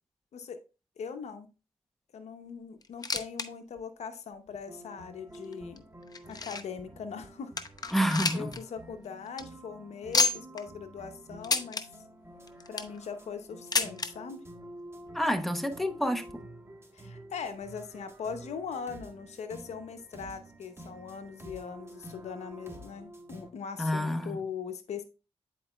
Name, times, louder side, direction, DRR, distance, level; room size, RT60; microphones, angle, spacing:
voice 1, 1.0-1.5 2.1-5.8 6.3-7.5 7.8-8.0 8.3-11.8 12.7-14.4 16.9-25.0, left 6 dB, 85° left, 0.8 m, -40 dB
sound 1, 2.8-3.5 3.8-3.9 4.5-4.6 5.3-6.8 7.2-7.3 7.6-8.6 8.9-9.0 9.3-9.4 10.1-10.6 11.4-11.8 12.5-13.0 13.7-14.1 15.1-15.2 15.4-15.5 16.3-16.4, left 4 dB, 35° left, 0.7 m, -29 dB
sound 2, 4.7-23.5, right 1 dB, 20° right, 1.3 m, -49 dB
voice 2, 7.9-8.5 15.1-16.2 23.8-24.4, equal, ahead, 0.9 m, -28 dB
10.0 x 4.6 x 2.3 m
cardioid pair, 60°, 11 cm